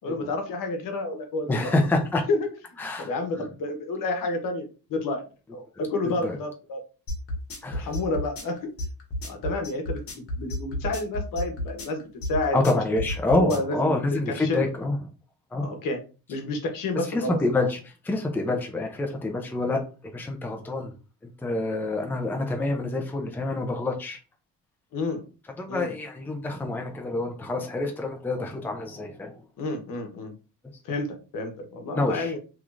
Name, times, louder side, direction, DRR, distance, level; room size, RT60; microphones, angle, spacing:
voice 1, 0.0-1.7 2.3-2.5 3.0-5.2 5.5-6.8 7.7-8.7 9.2-12.6 13.4-14.0 14.3-14.6 15.6-16.0 16.3-17.4 24.9-25.2 25.7-25.9 29.6-30.3 30.8-32.4, left 2 dB, 65° left, 5 dB, 1.1 m, -30 dB
voice 2, 1.5-2.2 2.8-3.1 6.2-6.4 7.6-7.9 12.5-15.0 15.5-15.7 17.1-19.8 20.1-20.9 21.2-24.2 25.6-29.4 31.9-32.4, left 2 dB, 5° left, 3 dB, 0.5 m, -27 dB
sound 1, 7.1-13.7, left 1 dB, 40° left, 1.6 m, -31 dB
3.6 x 3.1 x 2.5 m, 0.34 s
cardioid pair, 130°, 35 cm